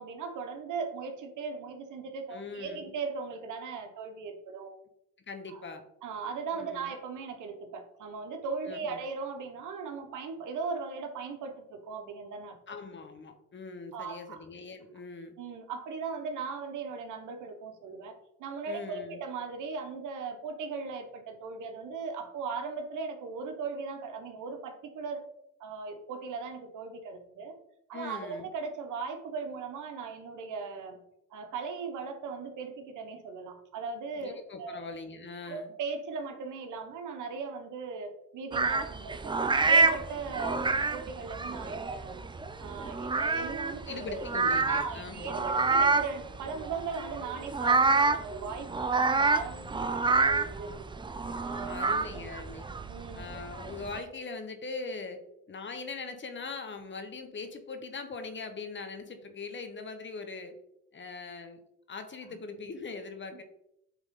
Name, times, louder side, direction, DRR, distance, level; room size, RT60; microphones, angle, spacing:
voice 1, 0.0-4.7 5.5-5.6 6.0-12.6 13.9-14.4 15.4-25.2 25.6-27.6 27.9-31.0 31.3-34.8 35.5-42.2 42.6-44.2 44.6-50.9 51.4-51.8 52.9-53.3 62.2-62.4, right 5 dB, 80° right, 5 dB, 1.1 m, -38 dB
voice 2, 2.3-2.9 5.3-5.8 6.5-6.9 8.7-9.0 12.7-15.3 18.7-19.2 27.9-28.5 34.2-35.7 40.5-40.6 43.9-45.5 51.7-52.7 53.2-55.2 55.5-60.5 60.9-61.6 61.9-63.4, left 4 dB, 40° left, 7 dB, 1.1 m, -41 dB
sound 1, 38.5-54.0, right 3 dB, 15° right, 0.5 m, -28 dB
8.2 x 3.7 x 3.8 m, 0.80 s
cardioid pair, 90°, 30 cm